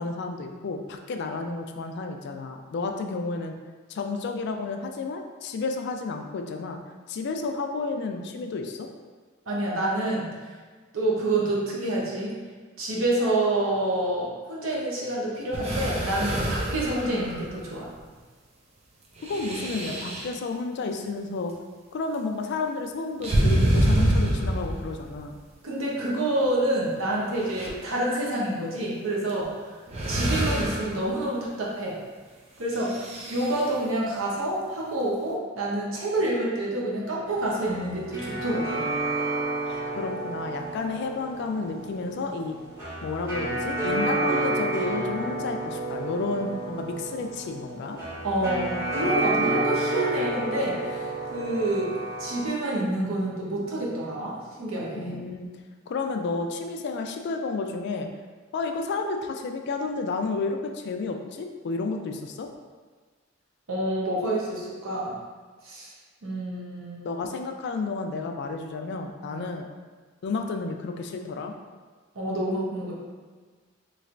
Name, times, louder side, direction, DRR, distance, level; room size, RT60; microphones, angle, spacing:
voice 1, 0.0-3.5 3.9-6.8 7.1-8.9 19.2-21.5 21.9-25.4 40.0-42.6 43.0-48.0 55.0-55.5 55.9-58.1 58.5-62.5 67.0-69.7 70.2-71.5, left 3 dB, 55° left, 4 dB, 0.3 m, -31 dB
voice 2, 9.5-10.3 10.9-12.3 12.8-17.9 25.6-29.5 30.1-32.0 32.6-32.9 33.3-38.9 48.2-51.9 52.2-55.2 63.7-65.2 65.6-65.9 66.2-67.2 69.3-69.5 72.1-72.9, right 1 dB, 85° right, -4 dB, 0.8 m, -28 dB
sound 1, 15.5-17.7 19.2-20.3 23.2-25.2 26.4-26.5 27.1-27.7 29.3-29.4 29.9-31.0 32.7-33.7, right 1 dB, 30° right, 0.4 m, -26 dB
sound 2, 37.3-52.5, right 2 dB, 15° right, 0.9 m, -30 dB
3.2 x 3.1 x 2.5 m, 1.4 s
head